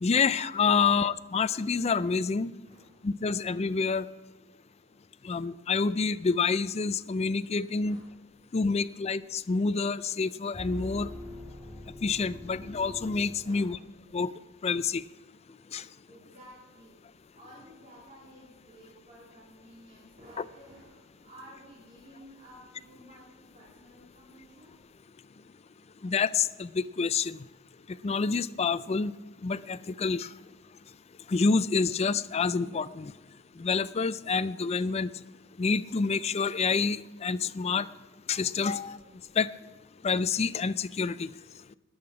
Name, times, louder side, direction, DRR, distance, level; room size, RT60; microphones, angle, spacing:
voice 1, 0.0-2.5 3.0-4.1 5.2-8.0 8.5-11.1 12.0-13.8 14.1-14.3 14.6-15.0 15.7-15.9 20.4-20.5 26.0-27.4 27.9-29.1 29.4-30.3 31.3-33.1 33.6-35.1 35.6-37.9 38.3-39.0 39.4-39.5 40.0-41.3, left 5 dB, 30° left, 16 dB, 0.4 m, -28 dB
voice 2, 2.6-3.0 4.6-5.3 7.8-8.1 8.6-8.7 13.4-13.8 16.1-24.8 38.6-38.9, equal, 30° right, -5 dB, 3.0 m, -53 dB
sound 1, 10.5-14.0, left 1 dB, 5° left, 2.6 m, -43 dB
20.5 x 8.7 x 4.9 m, 1.3 s
head